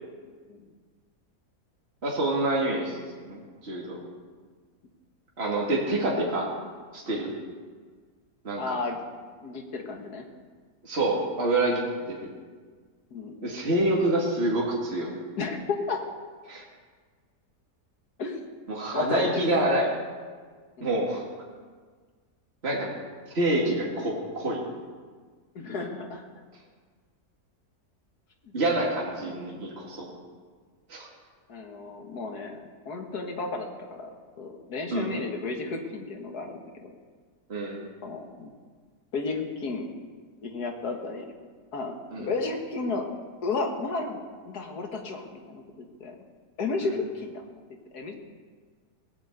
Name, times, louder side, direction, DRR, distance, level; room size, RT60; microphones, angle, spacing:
voice 1, 2.0-3.0 3.2-4.0 5.4-6.5 6.9-7.3 8.4-8.8 10.8-11.8 12.1-12.3 13.4-15.1 16.5-16.6 18.7-19.9 20.8-21.2 22.6-22.9 23.3-24.6 28.5-30.1 30.9-31.1 34.9-35.1 37.5-37.8 42.1-42.3 46.8-46.9, right 1 dB, 40° right, -4 dB, 2.5 m, -27 dB
voice 2, 8.6-9.0 9.4-10.3 12.2-12.3 13.1-13.3 15.4-16.0 18.2-18.4 18.9-19.4 20.8-20.9 25.6-26.2 28.4-28.5 29.2-29.4 31.5-36.9 38.0-38.5 39.1-39.9 40.4-41.3 41.7-43.1 43.4-45.6 46.0-46.2 46.6-47.4 47.9-48.1, left 3 dB, 75° left, 3 dB, 2.2 m, -33 dB
17.5 x 8.6 x 8.1 m, 1.6 s
omnidirectional pair, 1.7 m